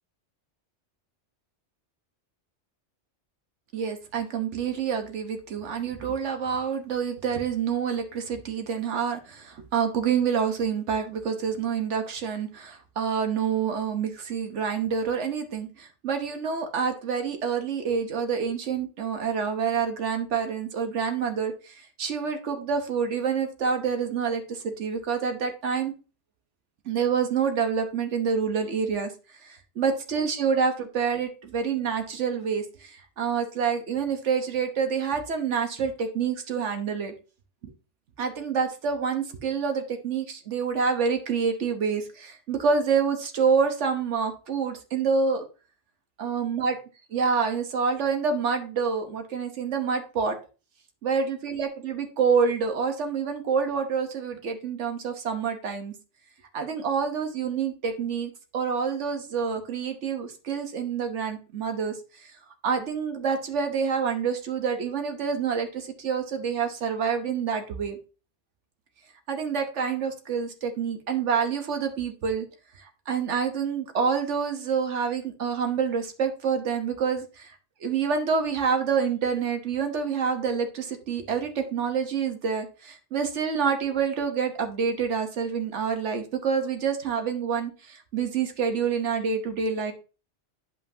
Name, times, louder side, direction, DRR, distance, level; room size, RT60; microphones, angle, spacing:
voice 1, 3.7-25.9 26.8-37.1 37.6-37.7 38.2-45.4 46.2-46.8 47.1-50.4 51.0-55.9 56.5-62.3 62.6-68.0 69.3-72.5 72.8-89.9, right 6 dB, 85° right, 5 dB, 1.3 m, -27 dB
10.0 x 5.5 x 2.7 m, 0.34 s
omnidirectional pair, 1.2 m